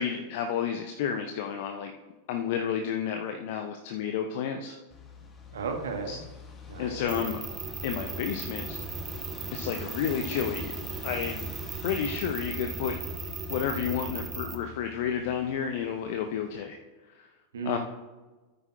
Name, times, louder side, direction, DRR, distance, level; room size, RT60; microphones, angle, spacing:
voice 1, 0.0-1.9 2.3-4.8 6.1-6.2 6.8-7.4 7.8-8.8 9.5-10.7 11.0-11.5 11.8-13.0 13.5-16.8 17.1-17.3 17.6-17.8, left 8 dB, 50° left, 5 dB, 0.6 m, -31 dB
sound 1, 4.9-16.6, left 4 dB, 25° left, 1.3 m, -45 dB
voice 2, 5.5-6.2 6.7-7.0 17.5-17.8, right 5 dB, 65° right, 4 dB, 1.3 m, -34 dB
sound 2, 7.1-14.6, right 5 dB, 20° right, 0.8 m, -37 dB
13.0 x 9.0 x 2.3 m, 1.2 s
figure-of-eight pair, 90°, 0 cm